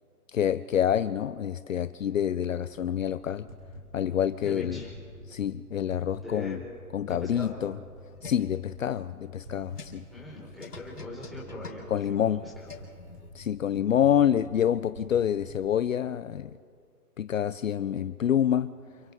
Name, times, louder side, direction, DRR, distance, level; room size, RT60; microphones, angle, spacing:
voice 1, 0.3-3.5 3.9-4.8 5.3-6.6 6.9-7.8 8.2-10.0 11.9-12.4 13.3-16.5 17.2-18.7, left 9 dB, 60° left, 14 dB, 0.7 m, -27 dB
sound 1, 2.7-15.7, equal, 50° right, 7.4 m, -48 dB
voice 2, 4.4-5.0 6.2-6.6 7.1-7.6 10.1-11.8 12.2-12.7, left 2 dB, ahead, -6 dB, 4.8 m, -41 dB
sound 2, 7.8-13.3, left 5 dB, 80° left, 4.1 m, -48 dB
28.5 x 27.0 x 3.6 m, 2.3 s
hypercardioid pair, 150°, 45 cm